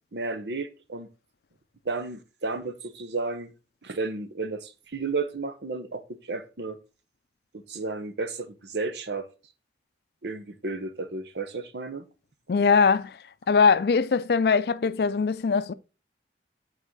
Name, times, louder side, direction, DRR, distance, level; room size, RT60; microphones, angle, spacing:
voice 1, 0.1-1.1 1.8-3.5 3.8-6.8 7.5-9.3 10.2-12.1, right 3 dB, 80° right, 1.0 m, -33 dB
voice 2, 12.5-13.2 13.5-15.7, left 5 dB, 65° left, 0.4 m, -21 dB
7.4 x 4.4 x 4.7 m
head